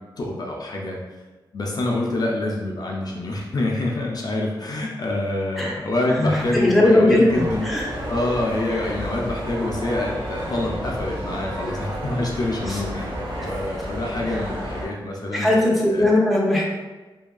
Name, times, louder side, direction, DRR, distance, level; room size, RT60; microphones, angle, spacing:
voice 1, 0.2-1.0 1.5-7.7 8.1-13.1 13.4-15.5 15.9-16.1, left 2 dB, 50° left, -1 dB, 0.4 m, -26 dB
voice 2, 6.2-7.9 12.7-12.8 13.4-13.5 15.3-16.6, left 1 dB, ahead, -4 dB, 0.6 m, -19 dB
sound 1, 7.3-14.9, equal, 90° right, 0.6 m, -31 dB
2.7 x 2.4 x 2.2 m, 1.2 s
wide cardioid pair, 100°, 8 cm